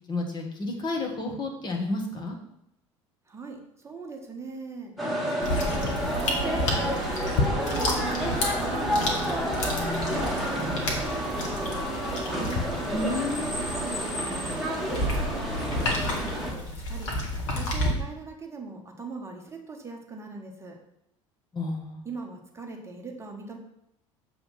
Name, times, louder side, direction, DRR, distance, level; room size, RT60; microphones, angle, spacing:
voice 1, 0.1-2.4 12.9-13.6 21.5-22.1, left 2 dB, 25° left, 1 dB, 1.5 m, -31 dB
voice 2, 3.3-4.9 5.2-7.1 7.4-9.4 9.9-12.7 13.5-14.5 14.8-17.1 17.5-20.8 22.0-23.6, right 4 dB, 15° right, 1 dB, 1.3 m, -41 dB
sound 1, 5.0-16.5, equal, ahead, 1.6 m, -30 dB
sound 2, 5.4-17.9, left 1 dB, 65° left, 1.4 m, -31 dB
6.8 x 3.5 x 5.7 m, 0.80 s
figure-of-eight pair, 65°, 16 cm